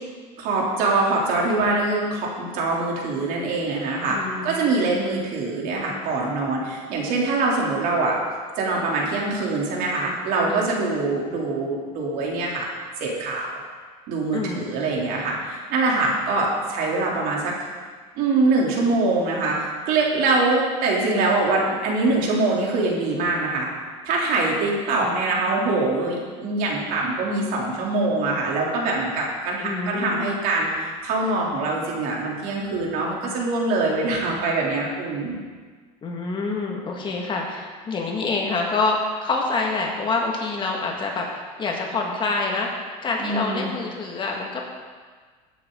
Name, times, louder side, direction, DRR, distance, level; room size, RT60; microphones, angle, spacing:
voice 1, 0.4-4.2 4.4-8.2 8.6-12.7 13.0-13.5 14.1-17.5 18.2-23.7 24.0-35.4 43.2-43.7, right 3 dB, 60° right, -3 dB, 3.2 m, -23 dB
voice 2, 4.1-4.5 10.5-10.6 14.3-14.9 25.0-25.1 29.6-30.1 36.0-44.6, left 3 dB, 30° left, 0 dB, 1.9 m, -27 dB
16.0 x 8.4 x 3.9 m, 1.5 s
supercardioid pair, 130°, 17 cm